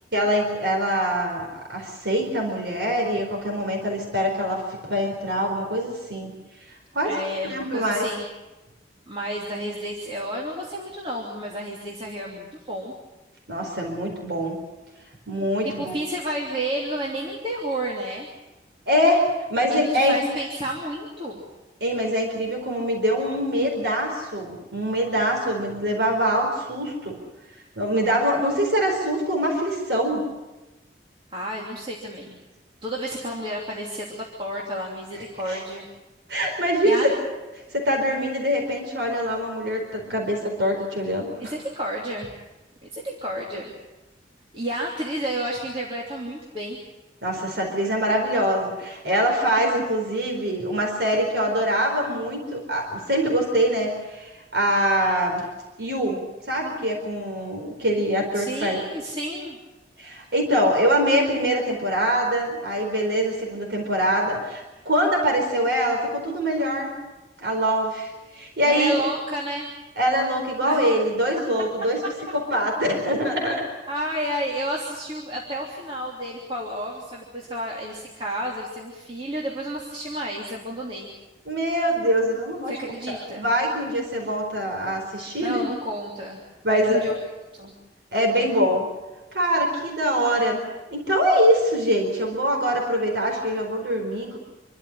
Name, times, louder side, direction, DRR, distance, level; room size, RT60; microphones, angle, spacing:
voice 1, 0.1-6.4 6.7-7.2 7.4-8.1 13.5-14.6 15.3-15.9 18.9-20.2 21.8-27.2 27.8-30.3 35.1-35.6 36.3-37.2 37.7-41.5 47.2-55.5 55.8-56.2 56.5-58.8 60.0-67.0 67.4-69.0 70.0-72.0 72.3-73.7 81.5-82.8 83.1-85.6 86.6-87.1 88.1-88.9 89.3-94.4, equal, 70° right, 1 dB, 4.5 m, -24 dB
voice 2, 7.0-8.2 9.1-12.9 15.6-18.3 19.7-21.4 31.3-32.4 32.8-35.9 36.8-37.0 41.4-42.3 42.8-43.7 44.5-46.8 58.3-59.6 68.6-69.7 70.6-70.8 73.9-81.1 82.7-83.5 85.4-87.1 87.5-87.7, right 1 dB, 30° right, -3 dB, 3.1 m, -31 dB
27.5 x 13.0 x 9.9 m, 1.1 s
head